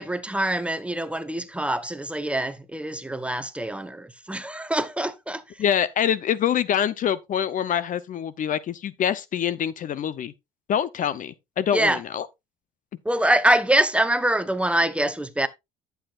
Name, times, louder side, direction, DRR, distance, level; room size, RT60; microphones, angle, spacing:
voice 1, 0.0-5.6 11.7-12.0 13.0-15.5, right 1 dB, 5° right, 0.8 m, -24 dB
voice 2, 5.6-10.3 10.7-12.3, left 9 dB, 50° left, 0.7 m, -25 dB
11.0 x 8.0 x 2.5 m
cardioid pair, 110°, 17 cm